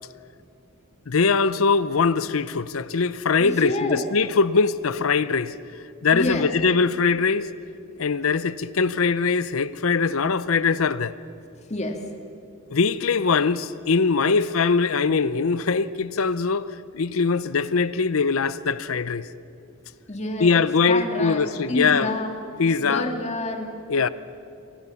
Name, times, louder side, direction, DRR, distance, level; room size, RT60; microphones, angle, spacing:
voice 1, 1.1-5.5 6.0-7.5 8.0-11.1 12.7-16.7 16.9-19.3 20.4-22.1 22.6-23.1 23.9-24.1, left 5 dB, 75° left, 0.7 m, -22 dB
voice 2, 3.4-4.0 6.1-6.5 11.7-12.0 20.1-22.3 22.8-23.7, left 1 dB, 35° left, 2.0 m, -28 dB
24.5 x 18.0 x 7.1 m
head